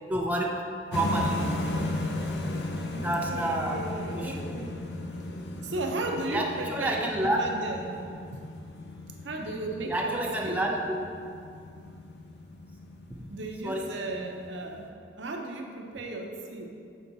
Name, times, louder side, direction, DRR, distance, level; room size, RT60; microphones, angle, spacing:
voice 1, 0.1-1.4 3.0-3.8 4.1-4.5 6.3-7.4 9.9-11.0 13.1-13.2 13.6-13.9, right 1 dB, 10° right, -1 dB, 0.5 m, -29 dB
sound 1, 0.9-14.9, left 1 dB, 70° left, 0.6 m, -36 dB
voice 2, 2.9-4.8 5.6-7.9 8.3-8.4 9.2-10.5 13.3-16.7, right 2 dB, 85° right, 2 dB, 0.7 m, -35 dB
7.2 x 4.5 x 4.0 m, 2.4 s
head